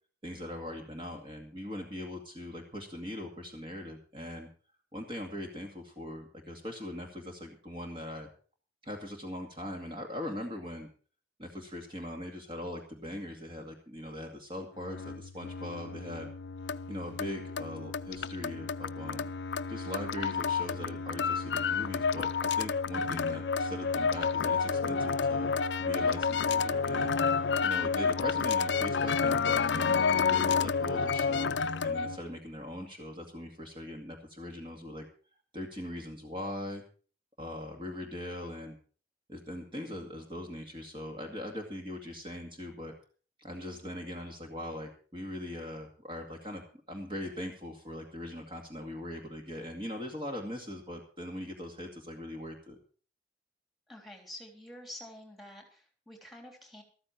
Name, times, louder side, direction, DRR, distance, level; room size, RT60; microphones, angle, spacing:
voice 1, 0.2-4.5 4.9-8.3 8.8-10.9 11.4-16.3 16.9-19.3 19.7-25.5 25.8-27.2 27.6-35.1 35.5-36.8 37.4-38.8 39.3-42.9 43.4-52.8, left 1 dB, 30° right, 2 dB, 2.3 m, -41 dB
sound 1, 14.8-32.2, left 5 dB, 90° left, 0.5 m, -30 dB
voice 2, 53.9-56.8, left 1 dB, ahead, 3 dB, 3.4 m, -48 dB
14.0 x 13.5 x 4.5 m, 0.40 s
head